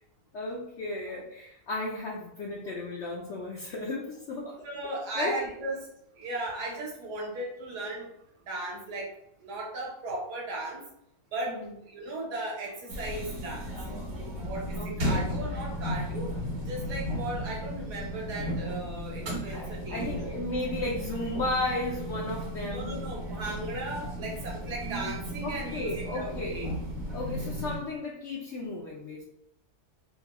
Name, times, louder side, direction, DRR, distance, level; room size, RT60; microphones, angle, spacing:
voice 1, 0.3-4.6 5.2-5.4 11.5-11.7 14.8-15.2 19.5-23.0 25.4-26.6 27.1-29.2, left 2 dB, 75° left, -3 dB, 0.6 m, -34 dB
voice 2, 4.6-5.8 6.1-8.1 8.5-9.1 9.4-10.8 11.3-13.7 14.3-16.3 16.7-20.3 22.7-26.7, right 2 dB, 75° right, -3 dB, 1.5 m, -36 dB
sound 1, 12.9-27.8, equal, 50° right, 0.9 m, -35 dB
3.7 x 2.2 x 2.9 m, 0.82 s
omnidirectional pair, 1.7 m